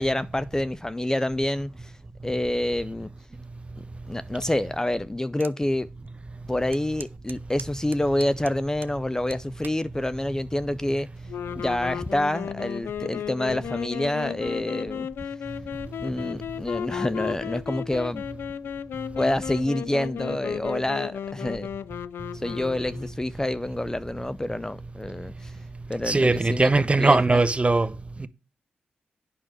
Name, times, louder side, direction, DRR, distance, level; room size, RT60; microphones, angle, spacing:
voice 1, 0.0-1.9 2.2-3.1 4.1-5.9 6.5-11.1 11.6-15.1 16.0-18.2 19.2-21.7 22.4-25.5 25.9-26.7 27.0-27.4, left 1 dB, 15° left, 0.5 m, -27 dB
sound 1, 5.4-5.6 6.1-6.2 6.7-9.0 9.3-9.8 10.5-10.8, right 6 dB, 60° right, 0.6 m, -43 dB
sound 2, 11.3-23.1, left 9 dB, 75° left, 0.4 m, -34 dB
voice 2, 26.1-27.9, right 3 dB, 30° right, 0.8 m, -20 dB
8.8 x 6.1 x 5.0 m
supercardioid pair, 45°, 4 cm